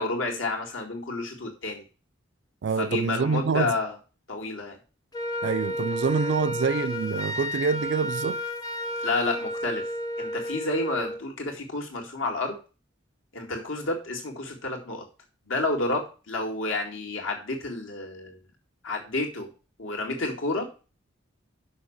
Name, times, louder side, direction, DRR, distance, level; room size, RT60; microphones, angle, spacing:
voice 1, 0.0-1.8 2.8-3.9 4.3-4.8 9.0-9.9 10.2-12.6 13.3-15.1 15.5-18.4 18.8-19.5 19.8-20.7, left 2 dB, 80° left, 2.2 m, -30 dB
voice 2, 2.6-3.8 5.4-8.4, right 5 dB, 60° right, 0.3 m, -26 dB
Wind instrument woodwind instrument, 5.1-11.2, equal, 20° left, 0.6 m, -32 dB
6.3 x 6.1 x 7.2 m
head